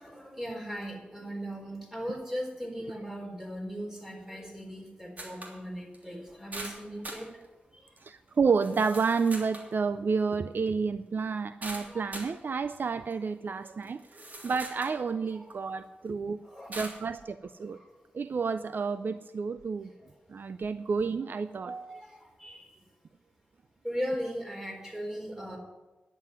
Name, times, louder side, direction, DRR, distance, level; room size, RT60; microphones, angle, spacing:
voice 1, 0.0-7.3 11.9-12.0 14.1-14.2 15.4-15.5 16.4-16.7 21.9-22.6 23.8-25.6, equal, 10° right, 1 dB, 4.2 m, -38 dB
sound 1, 5.2-5.6 5.9-6.0 6.5-7.3 8.0-8.1 8.6-9.7 11.6-12.3 13.1-13.2 13.8-15.0 15.5-15.6 16.7-17.0, right 1 dB, 45° right, 3.0 m, -42 dB
voice 2, 8.0-16.4 16.7-17.8 18.1-19.9 20.3-22.1 25.1-25.2, right 5 dB, 60° right, 12 dB, 0.5 m, -30 dB
10.5 x 7.7 x 9.5 m, 1.2 s
cardioid pair, 60°, 4 cm